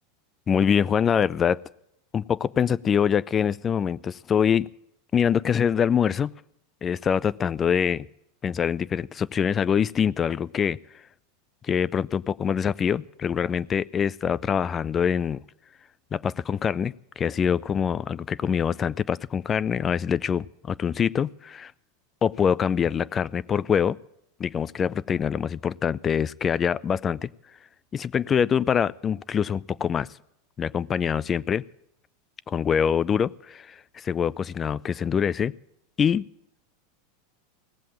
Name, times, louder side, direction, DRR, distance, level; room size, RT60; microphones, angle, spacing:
voice 1, 0.5-1.6 2.1-4.7 5.1-6.3 6.8-8.1 8.4-10.8 11.6-15.4 16.1-21.7 22.2-24.0 24.4-27.3 27.9-30.1 30.6-31.6 32.5-35.5 36.0-36.2, left 7 dB, 30° left, 21 dB, 0.4 m, -24 dB
17.5 x 7.6 x 8.6 m, 0.78 s
hypercardioid pair, 95°, 0 cm